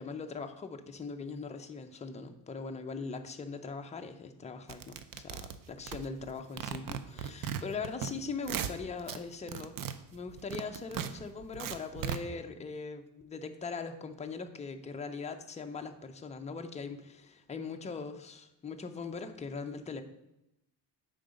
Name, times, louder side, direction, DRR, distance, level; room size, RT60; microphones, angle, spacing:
voice 1, 0.0-9.8 10.1-20.0, left 4 dB, 15° left, 5 dB, 0.4 m, -41 dB
sound 1, 4.7-6.3 6.6-8.1 8.4-9.2 9.5-12.2, right 8 dB, 50° right, 0.5 m, -37 dB
9.1 x 3.9 x 5.1 m, 0.88 s
cardioid pair, 160°, 43 cm